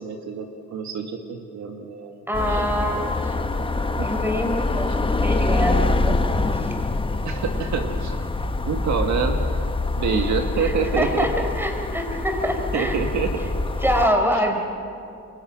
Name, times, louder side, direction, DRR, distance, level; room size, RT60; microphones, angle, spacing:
voice 1, 0.0-2.2 2.5-2.7 3.9-4.1 7.3-8.2 8.6-9.4 10.0-11.3 12.7-13.4 14.3-14.4, right 6 dB, 70° right, 4 dB, 1.9 m, -27 dB
sound 1, 2.3-14.1, left 2 dB, 15° left, 1.1 m, -25 dB
voice 2, 2.3-3.4 4.0-6.2 6.5-6.7 10.1-10.3 10.6-13.0 13.8-14.6, equal, 5° right, 4 dB, 4.2 m, -25 dB
29.0 x 23.0 x 6.1 m, 2.5 s
cardioid pair, 90°, 30 cm